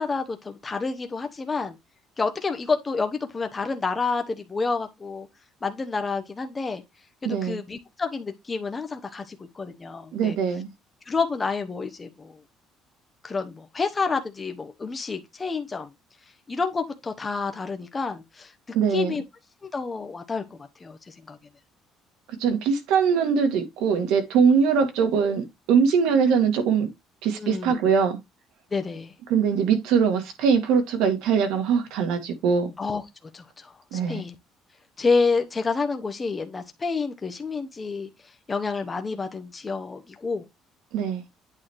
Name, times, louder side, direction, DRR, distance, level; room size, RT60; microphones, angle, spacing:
voice 1, 0.0-1.8 2.2-5.3 5.6-6.8 7.2-10.4 11.1-12.4 13.2-15.9 16.5-18.5 18.9-19.2 19.6-21.4 27.3-27.8 28.7-29.1 32.8-33.0 33.3-34.4 35.0-38.1 38.5-40.4, left 4 dB, 15° left, 1.0 m, -29 dB
voice 2, 7.2-7.6 10.1-10.7 18.7-19.2 22.4-26.9 27.2-28.2 29.3-32.7 33.9-34.2 40.9-41.2, right 6 dB, 85° right, 2.0 m, -22 dB
8.8 x 3.6 x 4.6 m
cardioid pair, 165°, 0 cm